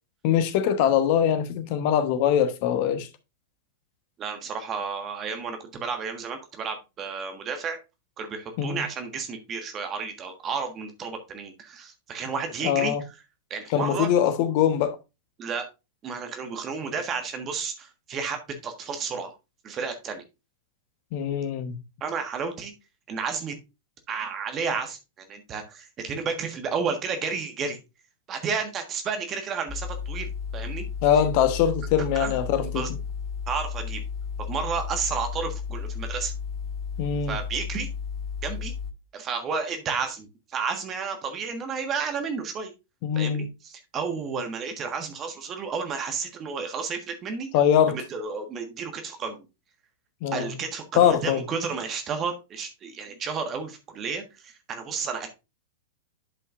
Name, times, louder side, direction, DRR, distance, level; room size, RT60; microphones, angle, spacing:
voice 1, 0.2-3.1 8.6-8.8 12.6-13.0 13.7-15.0 21.1-21.8 31.0-32.9 37.0-37.4 43.0-43.5 47.5-48.0 50.2-50.5 51.0-51.4, left 9 dB, 45° left, 1.1 m, -22 dB
voice 2, 4.2-7.8 8.2-12.9 13.5-14.1 15.4-15.7 16.0-19.3 19.6-20.2 22.0-22.7 23.1-23.6 24.1-27.8 28.3-30.8 32.1-32.9 33.5-34.0 34.5-36.3 37.3-37.9 38.4-38.7 39.1-42.7 43.1-47.5 47.9-49.5 50.3-55.3, right 5 dB, 30° right, 1.5 m, -32 dB
sound 1, 29.7-38.9, left 6 dB, 10° left, 1.4 m, -33 dB
11.0 x 5.4 x 2.5 m
figure-of-eight pair, 100°, 0 cm